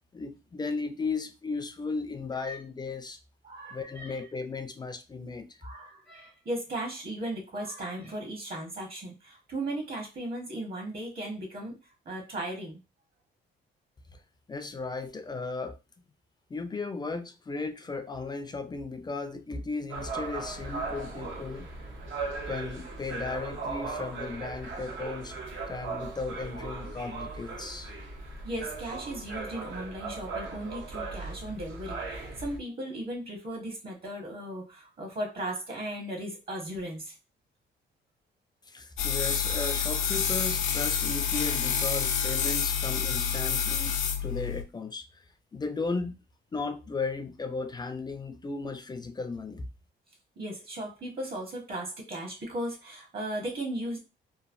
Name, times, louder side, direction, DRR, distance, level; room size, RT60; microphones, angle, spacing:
voice 1, 0.1-3.2 3.7-5.6 14.1-14.2 14.5-15.8 16.5-21.7 22.5-25.4 25.7-27.9 38.7-45.3 45.5-46.2 46.5-49.7, left 3 dB, 20° left, 0.4 m, -35 dB
voice 2, 3.4-4.2 5.6-11.7 12.0-12.8 28.4-37.1 50.4-54.0, right 1 dB, 50° right, 1.1 m, -36 dB
sound 1, 19.9-32.6, right 3 dB, 75° right, 0.7 m, -38 dB
sound 2, 39.0-44.6, left 7 dB, 80° left, 0.6 m, -28 dB
3.1 x 2.2 x 2.5 m
cardioid pair, 90°, 20 cm